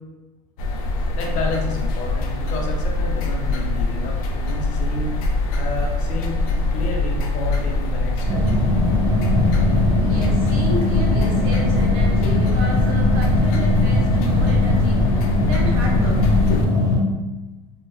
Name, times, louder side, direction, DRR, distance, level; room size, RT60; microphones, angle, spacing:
sound 1, 0.6-16.6, left 2 dB, 90° left, 0.4 m, -23 dB
voice 1, 1.1-5.3 5.5-6.4 6.7-8.4, left 2 dB, 45° left, 0 dB, 0.6 m, -30 dB
sound 2, 8.3-17.0, left 2 dB, 20° right, 0.4 m, -20 dB
voice 2, 9.9-16.2, right 1 dB, 85° right, -2 dB, 0.8 m, -32 dB
3.0 x 2.2 x 2.3 m, 1.1 s
supercardioid pair, 130°, 18 cm